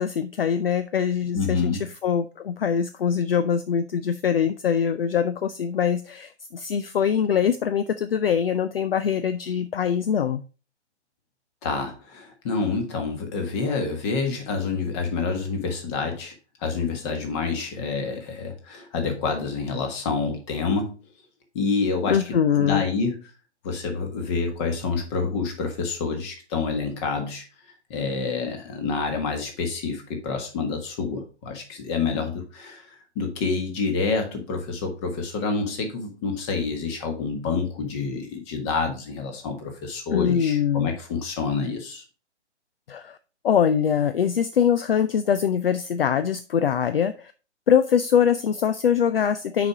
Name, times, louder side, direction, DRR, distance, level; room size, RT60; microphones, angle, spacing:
voice 1, 0.0-10.4 22.1-22.9 40.1-40.9 42.9-43.2 43.4-47.3 47.7-49.7, left 8 dB, 55° left, 12 dB, 0.5 m, -23 dB
voice 2, 1.3-1.9 11.6-16.3 16.6-20.9 21.5-22.2 22.5-23.2 23.6-27.4 27.9-42.0, left 4 dB, 25° left, 4 dB, 1.5 m, -28 dB
6.2 x 5.1 x 4.7 m, 0.34 s
figure-of-eight pair, 135°, 35 cm